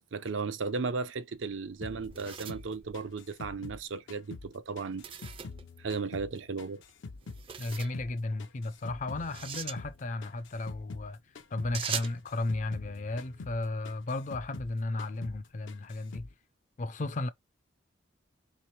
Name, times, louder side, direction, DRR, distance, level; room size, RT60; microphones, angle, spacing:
voice 1, 0.1-5.0 5.8-6.8, right 4 dB, 85° right, 0.6 m, -35 dB
sound 1, 1.7-3.6 5.0-5.6 7.3-8.0 9.2-9.8 11.7-12.2, right 8 dB, 30° right, 0.3 m, -40 dB
sound 2, 1.8-4.5 4.8-7.5 7.7-11.1 11.3-11.8 12.0-14.7 15.0-15.4 15.7-16.3, left 3 dB, 80° left, 0.6 m, -46 dB
voice 2, 7.6-11.2 11.5-16.3 16.8-17.3, left 2 dB, 40° left, 0.4 m, -34 dB
3.2 x 3.1 x 4.4 m
head